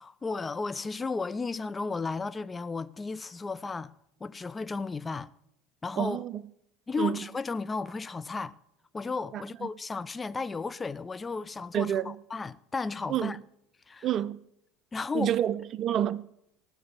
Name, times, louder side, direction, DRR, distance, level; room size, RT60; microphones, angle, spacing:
voice 1, 0.0-3.9 4.2-5.3 5.8-6.2 6.9-8.5 8.9-13.4 13.9-14.1 14.9-15.4, left 4 dB, 20° left, 0.6 m, -34 dB
voice 2, 6.0-6.4 7.0-7.2 9.3-9.4 11.7-12.1 13.1-13.3 14.0-14.4 15.1-16.2, right 10 dB, 45° right, 0.6 m, -28 dB
16.0 x 6.2 x 9.6 m
hypercardioid pair, 85°, 0 cm